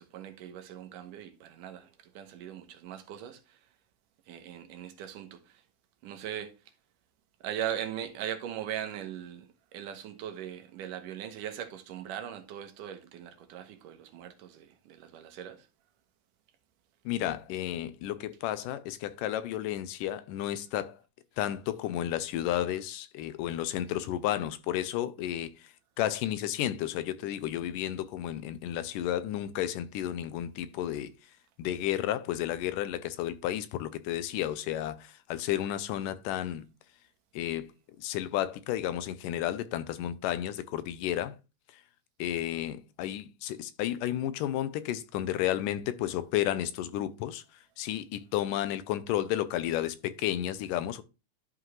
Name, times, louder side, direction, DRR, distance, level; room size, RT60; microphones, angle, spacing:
voice 1, 0.0-3.6 4.3-5.6 6.0-6.6 7.4-15.7, right 10 dB, 90° right, 2.6 m, -40 dB
voice 2, 17.1-21.0 21.4-31.1 31.6-36.7 37.3-37.7 38.0-41.4 41.7-41.8 42.2-47.4 47.8-51.0, left 12 dB, 90° left, 2.4 m, -32 dB
11.5 x 4.9 x 3.2 m
omnidirectional pair, 3.7 m